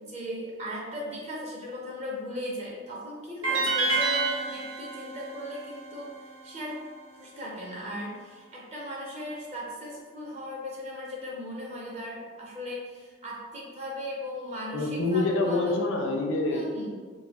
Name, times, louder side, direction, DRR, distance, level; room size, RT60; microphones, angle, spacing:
voice 1, 0.0-6.1 6.4-6.8 7.2-15.8 16.5-16.9, left 1 dB, 35° right, -4 dB, 0.6 m, -37 dB
sound 1, 3.4-6.6, right 3 dB, 85° right, 0.8 m, -29 dB
voice 2, 14.7-16.7, left 2 dB, 70° left, 2 dB, 0.5 m, -26 dB
2.5 x 2.3 x 4.0 m, 1.5 s
head